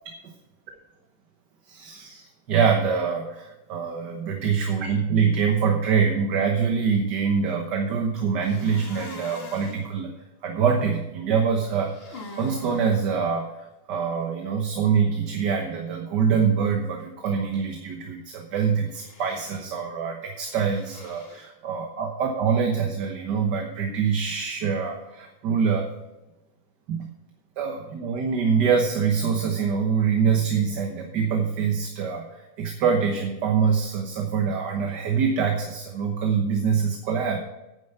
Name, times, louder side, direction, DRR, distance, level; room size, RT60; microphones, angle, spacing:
voice 1, 1.7-10.1 10.4-25.9 26.9-27.1 27.6-37.4, right 6 dB, 80° right, 3 dB, 1.8 m, -25 dB
sound 1, 8.4-9.8 11.6-13.0 18.9-19.7 20.4-21.5, left 3 dB, 35° left, 1.8 m, -43 dB
10.5 x 9.2 x 5.6 m, 1.0 s
omnidirectional pair, 1.8 m